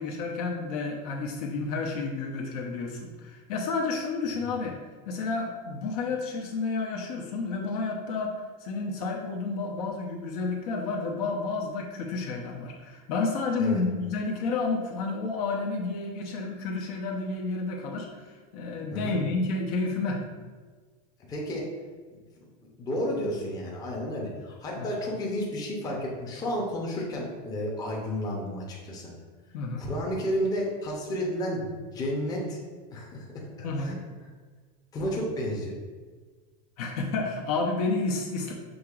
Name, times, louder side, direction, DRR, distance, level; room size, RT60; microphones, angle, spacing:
voice 1, 0.0-4.7 5.1-18.1 18.5-20.2 24.8-24.9 29.5-29.9 33.6-34.0 36.8-38.5, left 3 dB, 65° left, 0 dB, 0.8 m, -30 dB
voice 2, 21.3-21.7 22.8-29.1 29.8-32.6 32.9-33.4 33.8-34.0 34.9-35.7, equal, 20° left, -2 dB, 0.7 m, -31 dB
6.3 x 2.9 x 2.4 m, 1.4 s
supercardioid pair, 155°, 20 cm